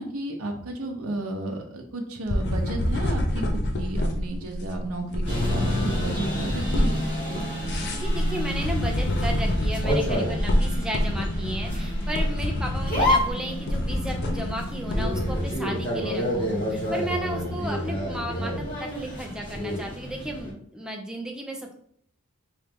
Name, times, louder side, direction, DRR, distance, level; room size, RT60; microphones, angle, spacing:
voice 1, 0.0-3.4 3.8-7.0, right 2 dB, 80° right, 2 dB, 0.7 m, -33 dB
sound 1, 2.3-15.5, left 1 dB, 50° left, 0.6 m, -27 dB
sound 2, 5.3-20.5, left 1 dB, 25° left, 1.8 m, -29 dB
voice 2, 8.0-21.7, right 1 dB, 5° right, 1 dB, 0.6 m, -34 dB
3.9 x 3.2 x 3.5 m, 0.65 s
head